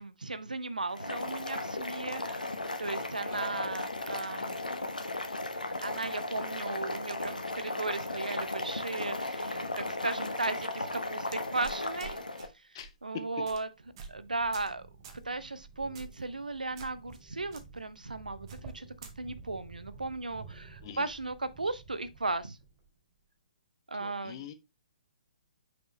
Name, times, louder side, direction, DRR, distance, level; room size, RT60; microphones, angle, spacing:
voice 1, 0.0-2.5 2.8-4.6 5.8-12.2 12.5-13.7 14.1-14.9 15.2-18.9 19.2-22.6 23.9-24.5, right 3 dB, 75° right, 0.7 m, -36 dB
Boiling, 0.9-12.5, left 2 dB, 80° left, 1.1 m, -36 dB
sound 1, 11.6-12.5 12.8-13.0 13.4-13.6 14.0-14.2 14.5-14.7 15.0-15.2 15.9-16.2 16.8-17.2 17.5-17.6 18.5-19.1, right 5 dB, 35° right, 1.3 m, -47 dB
sound 2, 13.7-23.0, right 5 dB, 20° right, 3.1 m, -52 dB
voice 2, 24.0-24.5, left 10 dB, 35° left, 0.8 m, -45 dB
6.0 x 5.2 x 3.1 m
figure-of-eight pair, 130°, 4 cm